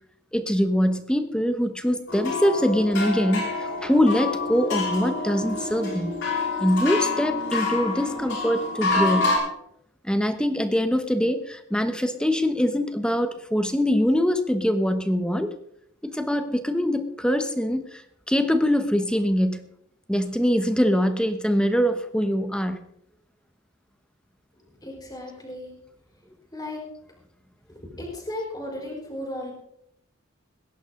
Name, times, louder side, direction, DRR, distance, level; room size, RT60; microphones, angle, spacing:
voice 1, 0.3-6.1 6.6-9.3 10.0-15.5 16.0-18.0 18.3-19.6 20.1-22.8, equal, 5° left, 8 dB, 1.0 m, -23 dB
sound 1, 2.1-9.4, left 3 dB, 70° left, 6.3 m, -27 dB
voice 2, 24.5-25.7 26.1-26.2 26.5-26.8 27.7-29.5, left 1 dB, 20° left, -1 dB, 4.2 m, -35 dB
20.5 x 10.5 x 3.8 m, 0.75 s
head